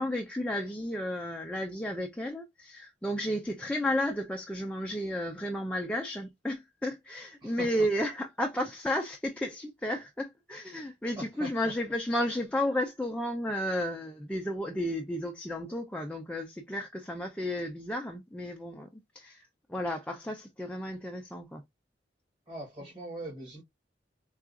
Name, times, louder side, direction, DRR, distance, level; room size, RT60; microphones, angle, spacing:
voice 1, 0.0-21.6, left 1 dB, 5° left, 0.5 m, -33 dB
voice 2, 7.4-7.9 11.2-11.5 22.5-23.6, right 1 dB, 25° right, 1.5 m, -41 dB
4.6 x 2.4 x 2.4 m
head